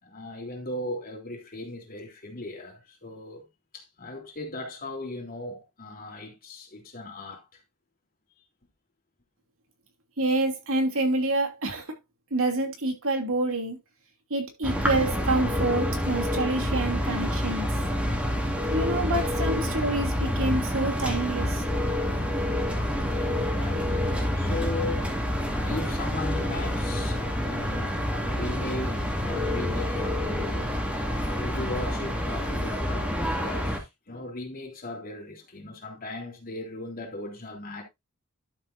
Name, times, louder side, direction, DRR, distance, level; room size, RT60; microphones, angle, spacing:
voice 1, 0.0-3.5 3.7-7.6 16.4-16.5 23.1-25.1 25.6-30.6 31.2-37.8, left 2 dB, 40° left, 3.4 m, -38 dB
voice 2, 10.2-11.9 12.3-13.8 14.3-17.7 18.7-21.6, right 2 dB, 65° right, 2.9 m, -27 dB
sound 1, 14.6-33.8, equal, 5° right, 2.5 m, -28 dB
12.0 x 7.6 x 2.7 m
head